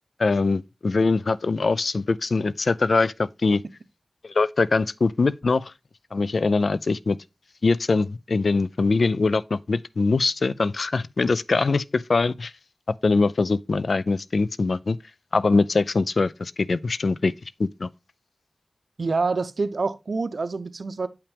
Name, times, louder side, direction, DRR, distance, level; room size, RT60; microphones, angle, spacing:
voice 1, 0.2-3.6 4.2-5.7 6.1-7.2 7.6-12.5 13.0-15.0 15.3-17.3 17.6-17.9, left 3 dB, 75° left, 0.4 m, -22 dB
voice 2, 19.0-21.1, right 4 dB, 75° right, 0.7 m, -26 dB
8.1 x 5.7 x 3.4 m
wide cardioid pair, 75°, 0 cm